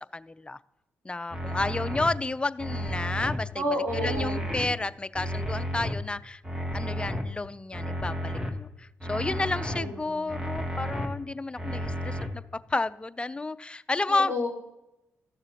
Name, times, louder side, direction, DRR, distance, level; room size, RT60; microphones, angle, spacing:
voice 1, 0.1-0.6 1.0-3.6 4.0-6.4 6.7-14.3, left 3 dB, 20° left, 14 dB, 0.4 m, -31 dB
sound 1, 1.3-2.1 2.6-3.4 3.9-4.7 5.2-5.9 6.4-7.2 7.7-8.5 9.0-9.8 10.3-11.1 11.6-12.3, equal, 10° right, 1.4 m, -32 dB
voice 2, 3.6-4.5 9.1-10.3 14.1-14.5, equal, 55° right, -1 dB, 3.6 m, -32 dB
13.5 x 6.7 x 2.9 m, 0.90 s
supercardioid pair, 55°, 6 cm